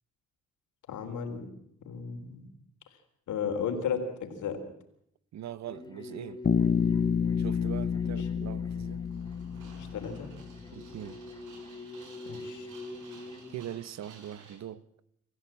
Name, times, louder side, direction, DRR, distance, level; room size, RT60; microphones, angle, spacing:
voice 1, 0.9-1.5 1.8-2.5 3.3-4.6 8.0-8.3 9.7-10.3 12.2-12.7, left 6 dB, 75° left, 3.9 m, -34 dB
voice 2, 5.3-6.4 7.4-9.0 10.7-11.2 13.5-14.8, right 10 dB, 60° right, 1.1 m, -41 dB
sound 1, 5.7-13.6, left 2 dB, 15° left, 3.1 m, -44 dB
Bass guitar, 6.4-10.5, left 7 dB, 35° left, 1.0 m, -29 dB
sound 2, 8.6-14.6, right 4 dB, 85° right, 6.2 m, -55 dB
26.0 x 15.0 x 7.5 m
cardioid pair, 90°, 30 cm